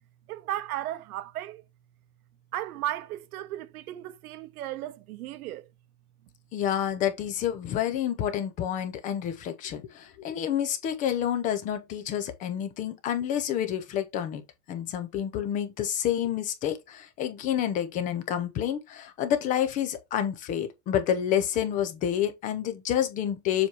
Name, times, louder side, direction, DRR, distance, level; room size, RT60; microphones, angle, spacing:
voice 1, 0.3-1.6 2.5-5.7, right 13 dB, 75° right, 0.9 m, -35 dB
voice 2, 6.5-14.4 14.7-23.7, left 10 dB, 20° left, 0.4 m, -29 dB
7.1 x 2.9 x 4.6 m
supercardioid pair, 140°, 44 cm